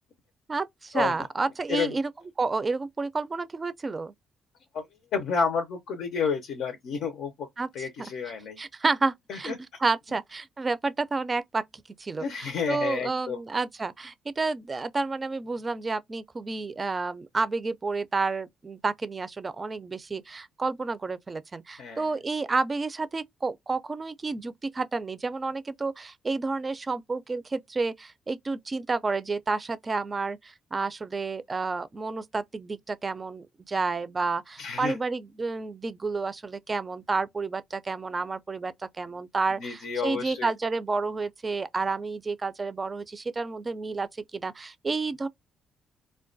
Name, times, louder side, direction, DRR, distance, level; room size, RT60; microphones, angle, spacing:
voice 1, 0.5-2.1 2.4-4.1 7.6-7.7 8.6-9.5 9.8-11.6 12.0-45.3, right 3 dB, 30° right, 0.4 m, -30 dB
voice 2, 5.1-7.5 7.7-8.6 9.3-9.5 12.2-13.4 21.8-22.1 34.6-35.0 39.6-40.5, left 5 dB, 80° left, 0.5 m, -30 dB
2.2 x 2.2 x 2.5 m
cardioid pair, 90°, 0 cm